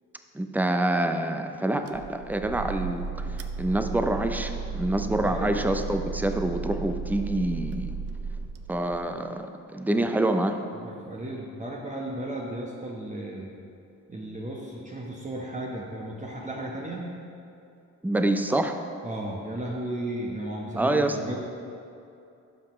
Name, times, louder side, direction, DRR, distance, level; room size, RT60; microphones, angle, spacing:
voice 1, 0.3-7.9 8.7-10.6 18.0-18.8 20.8-21.2, right 1 dB, 5° right, 6 dB, 0.6 m, -26 dB
sound 1, 1.9-9.2, right 5 dB, 45° right, 0.6 m, -34 dB
voice 2, 5.2-5.9 10.8-13.5 14.1-17.1 19.0-21.4, right 1 dB, 20° right, -3 dB, 1.1 m, -35 dB
11.5 x 5.8 x 3.2 m, 2.6 s
supercardioid pair, 65°, 33 cm